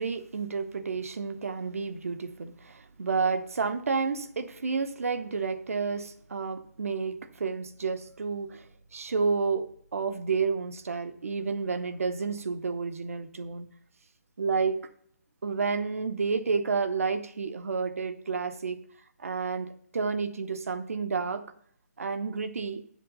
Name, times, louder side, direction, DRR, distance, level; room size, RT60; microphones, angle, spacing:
voice 1, 0.0-8.6 8.9-9.7 9.9-13.7 14.4-14.8 15.4-18.8 19.2-21.4 22.0-22.8, right 5 dB, 55° right, 11 dB, 0.9 m, -30 dB
7.7 x 7.5 x 5.3 m, 0.64 s
hypercardioid pair, 180°, 9 cm